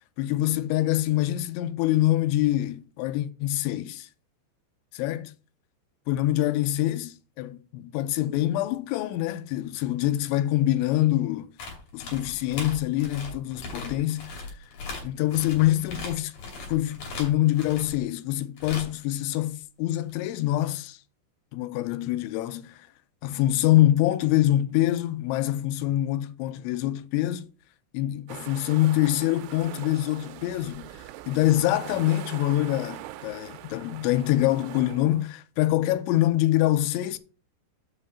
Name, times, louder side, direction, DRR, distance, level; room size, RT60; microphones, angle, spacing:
voice 1, 0.2-4.1 5.0-5.2 6.1-11.5 11.9-14.6 15.0-16.3 16.7-21.0 21.5-22.9 23.2-27.5 27.9-37.2, left 14 dB, 85° left, 3.0 m, -25 dB
sound 1, 11.6-18.0 18.6-19.0 20.1-20.2, left 3 dB, 45° left, 3.6 m, -39 dB
sound 2, 28.3-35.3, right 14 dB, 85° right, 3.1 m, -42 dB
7.1 x 5.6 x 5.5 m
omnidirectional pair, 5.4 m